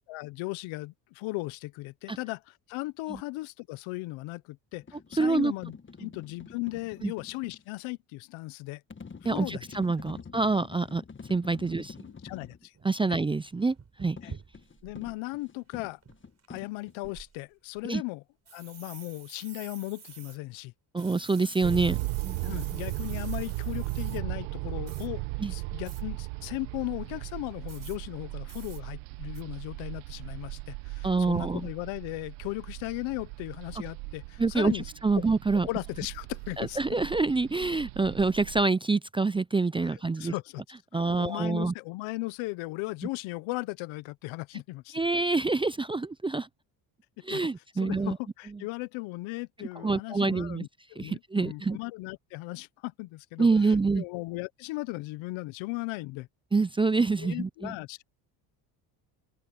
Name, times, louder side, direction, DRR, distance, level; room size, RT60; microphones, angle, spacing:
voice 1, 0.1-4.8 5.1-8.8 9.2-9.6 10.0-10.2 12.1-12.7 13.1-13.2 14.2-14.3 14.8-16.0 16.5-18.2 18.5-20.7 22.4-34.9 35.1-35.3 35.5-36.8 39.9-40.6 40.9-45.0 47.3-47.4 47.8-56.3 57.2-58.0, left 22 dB, 80° left, 1.2 m, -37 dB
sound 1, 4.7-7.6 8.9-12.6 14.2-17.1, left 5 dB, 25° left, 1.6 m, -47 dB
voice 2, 5.2-5.5 7.0-7.1 9.2-11.0 11.3-11.9 12.8-14.2 17.9-18.0 20.9-22.6 25.4-25.5 31.0-31.6 34.4-35.7 36.6-40.3 40.9-41.7 44.9-46.5 47.2-48.2 49.8-50.6 51.0-51.8 53.4-54.0 56.5-57.7, right 3 dB, 10° right, 0.4 m, -26 dB
sound 2, 11.7-11.8 12.4-12.5 12.7-15.2 15.5-15.7 16.0-16.6 17.0-17.8 18.5-20.4 21.0-24.2 24.9-25.1 25.8-26.0 27.7-28.0 28.5-28.8 29.3-29.4, right 5 dB, 35° right, 5.3 m, -49 dB
sound 3, 21.6-38.7, right 23 dB, 85° right, 1.0 m, -37 dB
open air
supercardioid pair, 85°, 47 cm